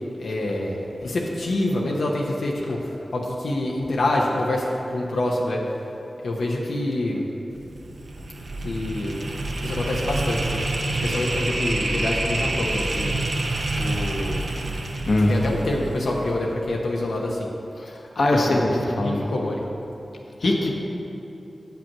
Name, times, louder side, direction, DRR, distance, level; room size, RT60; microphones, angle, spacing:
voice 1, 0.2-2.8 3.1-5.6 6.2-7.2 8.6-9.2 9.6-10.4 10.9-13.1 13.8-14.4 15.3-17.5 18.3-18.7 19.0-19.6, left 1 dB, 90° left, -3 dB, 1.0 m, -26 dB
sound 1, 7.5-16.7, right 2 dB, 65° right, 0.9 m, -28 dB
voice 2, 15.1-15.4 17.8-19.3 20.4-20.8, left 1 dB, 65° left, 0 dB, 1.1 m, -22 dB
8.9 x 5.8 x 7.4 m, 2.9 s
wide cardioid pair, 85°, 0 cm